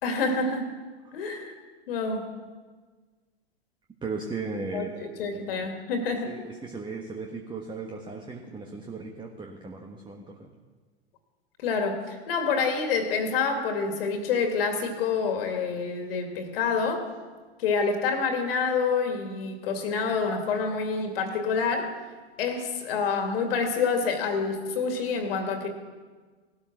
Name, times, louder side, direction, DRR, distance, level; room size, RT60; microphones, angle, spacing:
voice 1, 0.0-0.7 1.1-1.5 1.9-2.3 4.7-6.3 11.6-17.1 17.6-22.0 22.4-25.7, left 5 dB, 60° left, 5 dB, 2.5 m, -27 dB
voice 2, 4.0-5.7 6.3-10.5, right 4 dB, 15° right, 3 dB, 1.4 m, -37 dB
18.0 x 13.0 x 6.2 m, 1.4 s
figure-of-eight pair, 95°, 33 cm